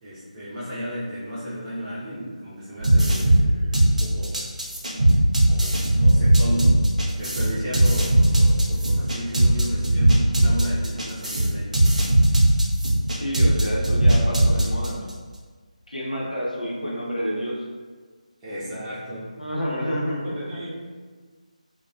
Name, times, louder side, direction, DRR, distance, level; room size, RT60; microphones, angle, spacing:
voice 1, 0.0-4.4 5.5-6.8 7.2-12.0 18.4-19.4 20.2-20.9, equal, 10° right, -11 dB, 0.4 m, -33 dB
sound 1, 2.8-15.1, right 1 dB, 65° right, 0.6 m, -18 dB
voice 2, 13.2-15.1 15.9-17.6 19.4-20.3, equal, 85° left, -4 dB, 0.7 m, -29 dB
2.3 x 2.1 x 2.5 m, 1.5 s
figure-of-eight pair, 155°, 4 cm